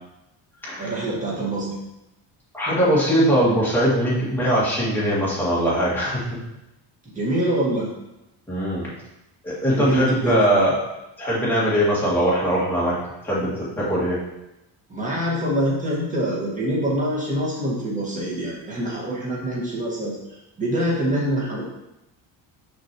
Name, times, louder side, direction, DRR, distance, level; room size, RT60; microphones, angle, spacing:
voice 1, 0.8-1.7 7.1-7.9 9.7-10.6 14.9-21.6, right 1 dB, 15° right, -4 dB, 1.5 m, -25 dB
voice 2, 2.5-6.4 8.5-8.9 9.4-10.7 11.2-13.0 13.2-14.2, equal, 5° left, -8 dB, 1.9 m, -21 dB
6.3 x 5.3 x 2.9 m, 0.91 s
cardioid pair, 165°, 48 cm